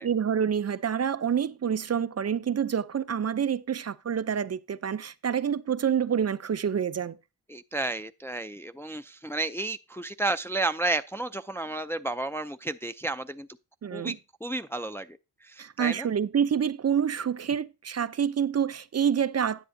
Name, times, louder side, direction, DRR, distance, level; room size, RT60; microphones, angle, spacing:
voice 1, 0.0-7.2 13.8-14.2 15.6-19.7, right 8 dB, 40° right, 0.6 m, -27 dB
voice 2, 7.5-13.5 13.9-14.1 14.4-15.2 15.4-16.1, right 2 dB, 5° left, 0.4 m, -32 dB
10.0 x 8.0 x 2.7 m
cardioid pair, 80°, 39 cm